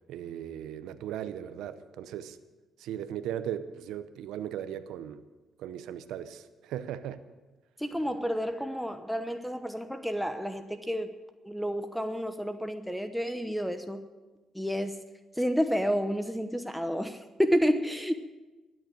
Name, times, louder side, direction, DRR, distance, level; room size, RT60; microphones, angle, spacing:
voice 1, 0.1-2.4 2.8-5.2 5.6-7.2, right 10 dB, 90° right, 11 dB, 0.7 m, -37 dB
voice 2, 7.8-11.2 11.4-14.0 14.5-14.9 15.4-18.1, equal, ahead, 9 dB, 0.9 m, -30 dB
13.5 x 9.9 x 9.5 m, 1.2 s
cardioid pair, 90°, 0 cm